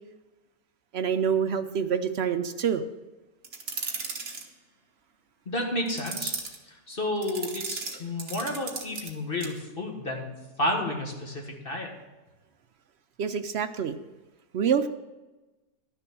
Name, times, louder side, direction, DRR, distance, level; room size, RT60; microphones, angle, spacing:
voice 1, 0.9-2.8 13.2-14.0 14.5-14.9, right 7 dB, 65° right, 8 dB, 0.6 m, -26 dB
sound 1, 3.4-4.5 5.9-6.6 7.2-9.1 9.4-9.6, right 4 dB, 50° right, 1.5 m, -35 dB
voice 2, 5.5-6.3 6.9-10.3 10.6-11.9, left 1 dB, 35° left, 0 dB, 1.8 m, -31 dB
11.5 x 6.9 x 6.0 m, 1.1 s
omnidirectional pair, 1.6 m